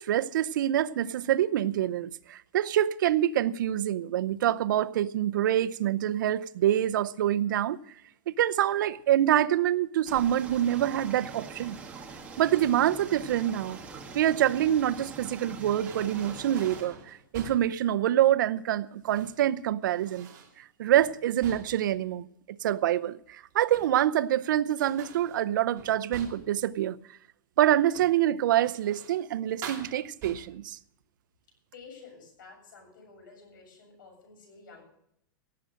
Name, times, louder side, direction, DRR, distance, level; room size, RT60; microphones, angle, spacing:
voice 1, 0.0-7.8 8.3-11.8 12.4-13.8 14.1-20.3 20.6-27.0 27.6-30.8, right 12 dB, 70° right, 0.7 m, -26 dB
sound 1, 10.1-16.8, right 4 dB, 10° right, 1.6 m, -44 dB
sound 2, 12.6-13.0 14.6-15.3 15.9-17.8 18.9-19.5 19.8-20.6 21.0-21.9 23.5-24.2 24.8-26.6 27.9-28.3 28.6-29.3 29.6-30.7, right 6 dB, 30° right, 2.8 m, -46 dB
voice 2, 31.7-34.8, left 4 dB, 75° left, 7.4 m, -51 dB
17.5 x 7.6 x 6.6 m
supercardioid pair, 165°, 11 cm